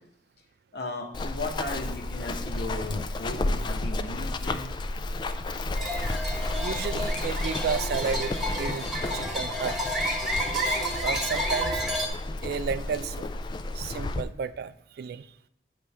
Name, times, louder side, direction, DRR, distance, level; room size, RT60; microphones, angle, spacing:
voice 1, 0.7-4.7, left 2 dB, 65° left, 2 dB, 1.2 m, -36 dB
Run, 1.1-14.2, left 2 dB, 25° left, 0.3 m, -32 dB
sound 1, 5.7-12.1, equal, ahead, 1.2 m, -30 dB
voice 2, 6.5-9.8 10.5-11.8 12.4-13.3 13.7-15.3, right 6 dB, 55° right, 13 dB, 0.3 m, -33 dB
8.9 x 3.2 x 5.5 m, 0.79 s
head